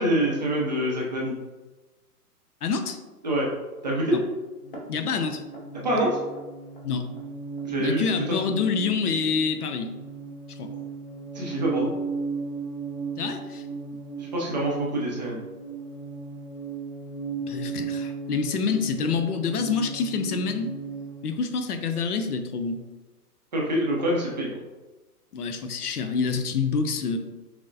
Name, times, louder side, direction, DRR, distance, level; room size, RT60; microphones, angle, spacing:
voice 1, 0.0-1.3 3.2-3.5 3.8-4.2 5.8-6.2 7.6-8.0 11.3-11.9 14.2-15.4 23.5-24.5, right 1 dB, 30° right, -3 dB, 0.5 m, -25 dB
voice 2, 2.6-3.0 4.1-4.2 4.9-5.4 6.8-7.1 7.8-9.9 10.5-10.7 13.2-13.6 17.4-20.7 21.2-22.8 25.3-27.2, left 5 dB, 70° left, 7 dB, 0.6 m, -27 dB
sound 1, 4.6-21.3, right 4 dB, 35° left, 0.8 m, -36 dB
5.9 x 2.1 x 2.6 m, 1.2 s
hypercardioid pair, 155°, 47 cm